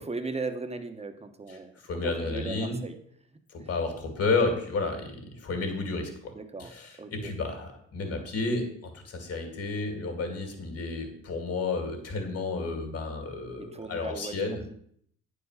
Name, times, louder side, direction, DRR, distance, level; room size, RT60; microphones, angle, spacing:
voice 1, 0.0-1.7 2.0-3.0 3.6-3.7 6.3-6.7 7.0-7.3 13.6-14.4, right 3 dB, 20° right, 7 dB, 1.1 m, -37 dB
voice 2, 1.8-2.8 3.5-6.3 6.6-14.6, left 3 dB, 50° left, 4 dB, 2.3 m, -31 dB
9.0 x 4.9 x 6.5 m, 0.65 s
cardioid pair, 90°, 30 cm